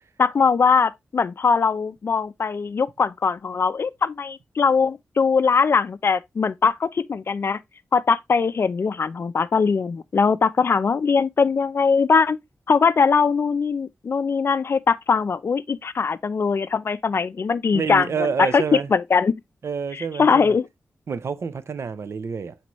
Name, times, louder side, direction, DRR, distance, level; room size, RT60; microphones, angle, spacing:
voice 1, 0.2-7.6 7.9-12.4 12.7-19.3 19.9-20.7, left 5 dB, 50° left, 0.4 m, -21 dB
voice 2, 17.7-18.9 19.6-20.5 21.1-22.6, right 6 dB, 65° right, 0.6 m, -28 dB
7.6 x 4.2 x 3.0 m
wide cardioid pair, 120°, 5 cm